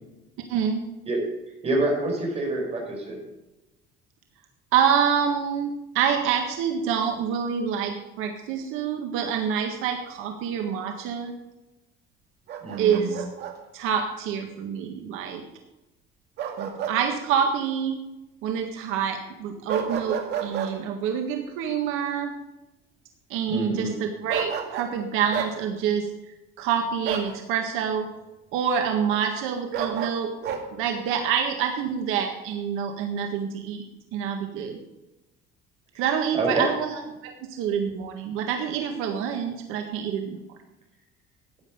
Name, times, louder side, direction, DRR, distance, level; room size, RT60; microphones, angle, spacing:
voice 1, 0.5-0.8 4.7-11.3 12.8-13.2 13.7-15.4 16.6-18.0 18.4-22.3 23.3-26.1 26.6-28.1 28.5-30.3 30.7-33.8 34.1-34.8 35.9-40.4, right 7 dB, 85° right, 4 dB, 1.7 m, -27 dB
voice 2, 1.6-3.2 12.6-13.1 23.5-23.9 35.9-36.0 36.3-36.7, right 2 dB, 30° right, -1 dB, 5.5 m, -26 dB
Bark, 12.5-13.6 16.4-17.0 17.3-17.5 19.7-20.7 24.3-25.0 25.3-25.5 27.0-27.3 29.7-30.6, right 8 dB, 55° right, 2.1 m, -31 dB
14.5 x 9.8 x 5.3 m, 1.0 s
cardioid pair, 155°, 21 cm